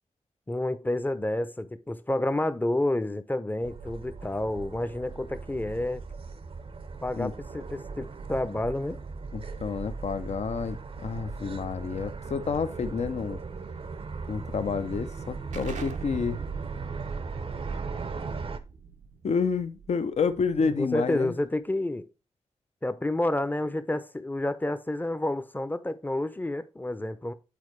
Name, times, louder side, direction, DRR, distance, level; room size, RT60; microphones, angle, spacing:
voice 1, 0.5-6.0 7.0-9.0 20.6-22.1 22.8-27.3, left 1 dB, 15° left, 0.6 m, -29 dB
sound 1, 3.6-18.6, right 4 dB, 50° right, 0.6 m, -38 dB
voice 2, 9.3-13.4 14.3-16.4 19.2-21.4, left 5 dB, 65° left, 0.6 m, -29 dB
Explosion, 15.5-20.9, right 5 dB, 85° right, 0.6 m, -41 dB
8.5 x 4.1 x 3.2 m
cardioid pair, 50°, 12 cm